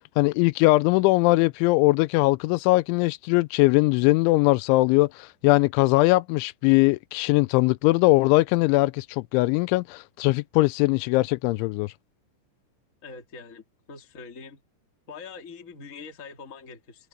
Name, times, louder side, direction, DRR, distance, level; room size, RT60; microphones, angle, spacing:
voice 1, 0.2-11.9, left 22 dB, 85° left, 2.7 m, -21 dB
voice 2, 13.0-14.6 15.1-17.1, left 5 dB, 55° left, 0.8 m, -43 dB
omnidirectional pair, 5.8 m